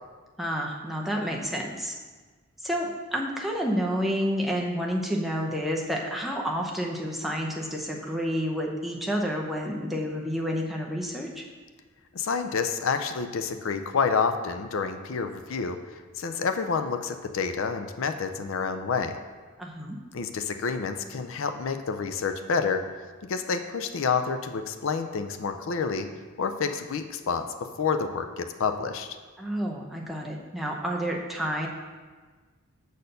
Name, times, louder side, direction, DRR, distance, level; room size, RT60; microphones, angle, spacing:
voice 1, 0.4-2.0 2.6-11.4 19.6-20.0 29.4-31.7, equal, ahead, -2 dB, 0.7 m, -29 dB
voice 2, 12.1-19.2 20.1-22.8 23.3-26.1 26.4-27.5 27.8-29.2, left 5 dB, 65° left, 8 dB, 0.4 m, -28 dB
6.7 x 4.3 x 6.6 m, 1.4 s
head